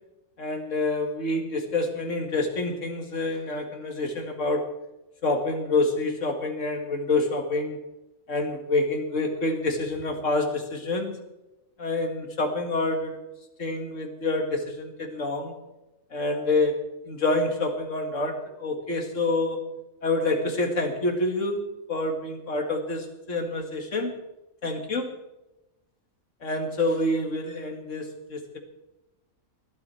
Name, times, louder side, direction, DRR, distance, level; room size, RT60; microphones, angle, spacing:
voice 1, 0.4-4.8 5.2-7.8 8.3-11.2 11.8-13.2 13.6-15.6 16.1-19.6 20.0-24.2 24.6-25.1 26.4-28.6, left 2 dB, 60° left, 4 dB, 2.4 m, -27 dB
19.5 x 12.0 x 4.5 m, 0.97 s
omnidirectional pair, 1.4 m